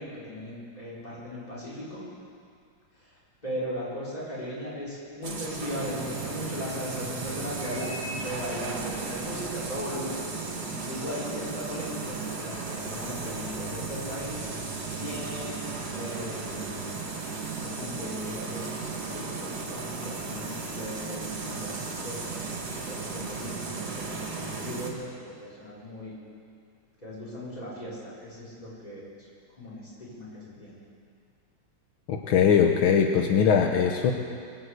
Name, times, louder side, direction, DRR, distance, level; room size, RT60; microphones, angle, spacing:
voice 1, 0.0-2.0 3.0-10.2 10.7-14.4 15.0-16.9 17.6-22.5 22.9-26.2 27.0-29.3 29.6-30.8, equal, 20° left, -7 dB, 4.7 m, -38 dB
sound 1, 5.2-24.9, right 4 dB, 50° right, 2.3 m, -35 dB
voice 2, 32.1-34.1, left 7 dB, 80° left, 3 dB, 1.7 m, -21 dB
22.5 x 7.9 x 8.0 m, 2.3 s
omnidirectional pair, 2.2 m